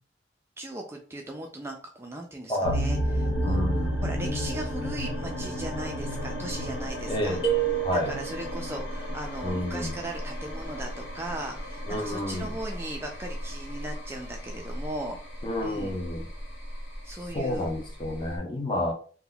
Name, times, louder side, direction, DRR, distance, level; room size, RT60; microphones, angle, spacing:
voice 1, 0.6-7.4 7.9-15.2 15.6-16.0 17.0-17.7, right 1 dB, 15° right, 3 dB, 0.3 m, -38 dB
sound 1, 2.6-18.4, equal, 75° left, 1.2 m, -33 dB
voice 2, 3.4-3.9 7.1-7.4 7.8-8.2 9.4-9.9 11.9-12.5 15.4-16.3 17.3-18.9, left 1 dB, 25° left, 2 dB, 0.7 m, -29 dB
sound 2, 7.4-8.6, right 11 dB, 60° left, 1.4 m, -28 dB
2.8 x 2.1 x 3.8 m, 0.41 s
head